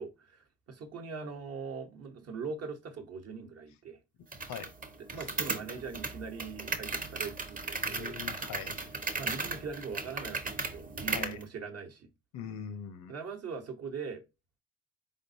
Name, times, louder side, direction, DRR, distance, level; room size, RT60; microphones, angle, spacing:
voice 1, 0.0-4.0 5.1-8.2 9.2-12.1 13.1-14.2, right 5 dB, 55° right, 0.9 m, -41 dB
sound 1, 4.3-11.4, right 3 dB, 25° right, 0.7 m, -36 dB
voice 2, 7.8-8.9 11.1-11.4 12.3-13.1, left 8 dB, 90° left, 0.7 m, -42 dB
4.1 x 3.6 x 2.6 m
cardioid pair, 90°, 30 cm